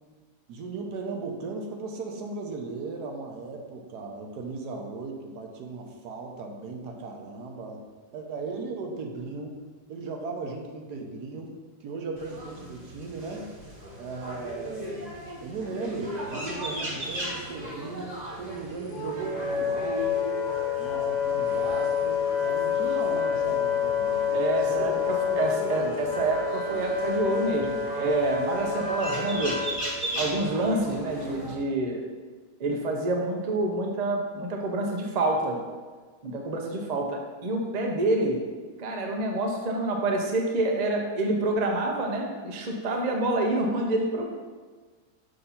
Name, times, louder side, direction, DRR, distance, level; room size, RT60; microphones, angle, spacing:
voice 1, 0.5-7.8 8.1-9.6 9.9-13.5 14.0-20.3 20.8-24.2 24.7-25.0 25.3-26.0, right 3 dB, 75° right, 2 dB, 1.3 m, -37 dB
sound 1, 12.2-31.5, right 1 dB, 30° right, 1.0 m, -38 dB
Wind instrument woodwind instrument, 18.9-29.8, left 6 dB, 70° left, 1.6 m, -28 dB
voice 2, 24.3-29.6 30.2-32.0 32.6-35.6 36.2-38.4 38.8-44.3, right 2 dB, 50° right, 1 dB, 0.5 m, -27 dB
6.5 x 2.7 x 5.6 m, 1.4 s
omnidirectional pair, 1.8 m